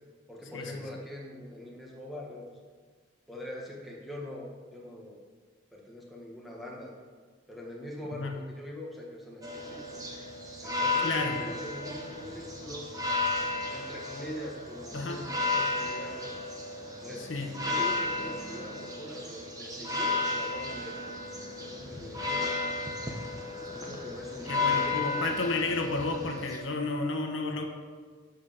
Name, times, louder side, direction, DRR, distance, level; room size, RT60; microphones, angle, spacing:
voice 1, 0.3-2.6 3.3-5.2 5.7-6.9 7.5-10.0 10.6-12.9 13.7-16.4 17.0-17.3 17.6-21.0 21.4-22.6 23.4-25.5, left 1 dB, ahead, -4 dB, 1.7 m, -43 dB
sound 1, 9.4-26.6, left 3 dB, 20° right, 1.2 m, -33 dB
voice 2, 11.0-11.4 14.9-15.2 17.3-17.5 23.9-24.0 24.5-27.6, left 3 dB, 75° left, 4 dB, 1.1 m, -32 dB
11.5 x 5.0 x 6.9 m, 1.5 s
head